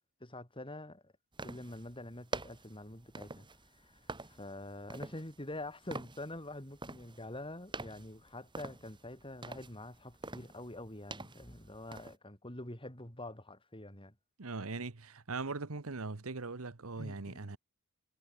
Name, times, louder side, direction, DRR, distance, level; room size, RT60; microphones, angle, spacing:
voice 1, 0.2-1.1 1.4-14.1 17.0-17.5, left 1 dB, 25° left, 5.2 m, -46 dB
sound 1, 1.3-12.2, right 2 dB, 20° right, 4.8 m, -47 dB
voice 2, 14.4-17.6, right 3 dB, 70° right, 1.2 m, -40 dB
head